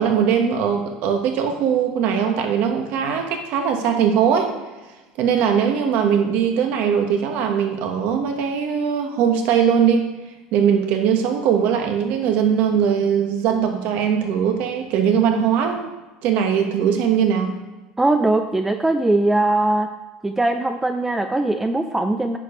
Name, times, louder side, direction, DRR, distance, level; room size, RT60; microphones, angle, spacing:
voice 1, 0.0-4.5 5.2-10.1 10.5-15.8 16.2-17.6, right 7 dB, 65° right, 4 dB, 1.4 m, -20 dB
voice 2, 18.0-19.9 20.2-22.4, right 2 dB, 10° right, 6 dB, 0.5 m, -20 dB
9.2 x 4.9 x 5.3 m, 1.2 s
supercardioid pair, 105°, 3 cm